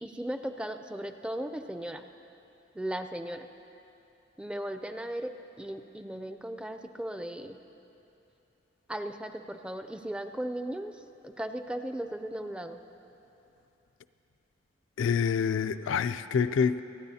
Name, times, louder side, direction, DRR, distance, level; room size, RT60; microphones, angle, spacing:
voice 1, 0.0-2.0 2.8-3.5 4.4-7.6 8.9-10.9 11.2-12.8, right 1 dB, 5° right, 7 dB, 0.4 m, -37 dB
voice 2, 15.0-16.8, left 6 dB, 70° left, 12 dB, 0.3 m, -27 dB
28.0 x 9.4 x 2.8 m, 2.8 s
head